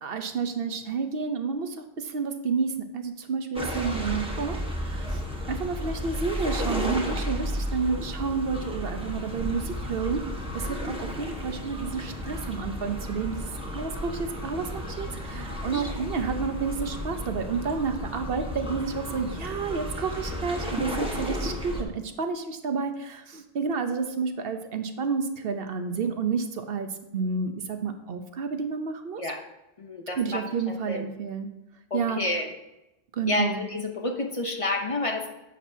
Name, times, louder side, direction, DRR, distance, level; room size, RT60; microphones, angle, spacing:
voice 1, 0.0-5.2 5.5-10.2 10.5-29.2 30.2-31.5 31.9-32.2 33.1-33.6, right 5 dB, 70° right, 7 dB, 1.0 m, -30 dB
sound 1, 3.5-21.8, equal, 5° right, 1.2 m, -33 dB
voice 2, 15.3-15.9 29.2-29.4 29.8-31.1 31.9-32.5 33.3-35.3, left 2 dB, 35° left, 3 dB, 0.8 m, -30 dB
10.0 x 7.7 x 2.7 m, 0.93 s
omnidirectional pair, 1.0 m